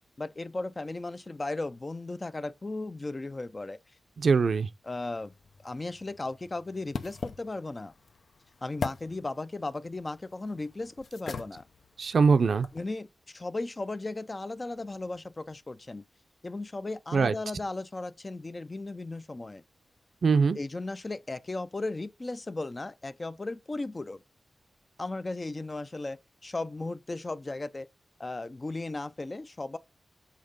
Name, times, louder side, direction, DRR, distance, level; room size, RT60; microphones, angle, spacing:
voice 1, 0.2-3.8 4.8-5.3 5.6-7.9 8.6-11.6 12.7-16.0 16.4-19.6 20.5-24.2 25.0-27.9 28.2-29.8, left 2 dB, 25° left, 0.4 m, -36 dB
voice 2, 4.2-4.7 12.0-12.7 17.1-17.3 20.2-20.6, right 5 dB, 65° right, 0.5 m, -22 dB
sound 1, 5.2-12.9, left 5 dB, 70° left, 0.7 m, -42 dB
7.4 x 3.6 x 5.1 m
wide cardioid pair, 135°, 0 cm